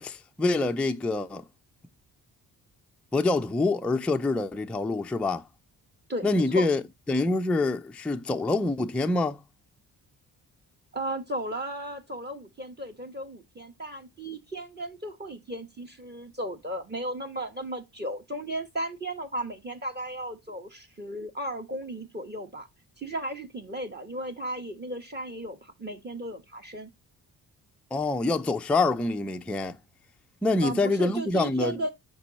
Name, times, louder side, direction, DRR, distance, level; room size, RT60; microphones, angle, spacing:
voice 1, 0.0-1.4 3.1-5.5 6.2-6.8 7.1-9.4 27.9-29.8 30.4-31.8, left 2 dB, 5° left, 0.4 m, -26 dB
voice 2, 6.1-6.7 10.9-22.7 23.0-26.9 30.6-31.9, right 1 dB, 20° right, 1.2 m, -35 dB
5.5 x 4.3 x 4.0 m
hypercardioid pair, 45°, 46 cm